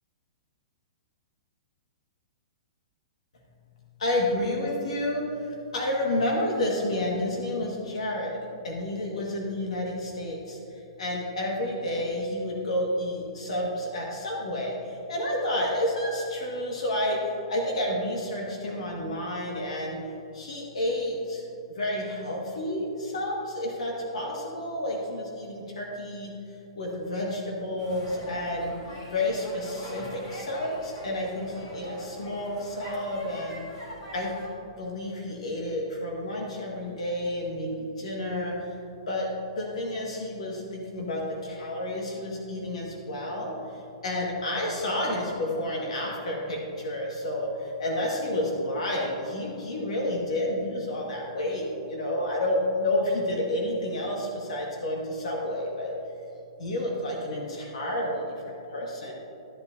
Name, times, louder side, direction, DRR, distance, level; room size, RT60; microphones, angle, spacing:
voice 1, 4.0-8.4 8.6-20.0 20.3-21.4 21.7-26.3 26.7-28.7 29.1-33.8 34.1-34.3 34.8-38.8 39.1-39.3 39.5-55.9 56.6-59.1, left 1 dB, 80° left, -2 dB, 1.6 m, -30 dB
sound 1, 27.8-34.5, equal, 45° left, 2.2 m, -43 dB
13.0 x 7.7 x 2.6 m, 2.7 s
hypercardioid pair, 180°, 3 cm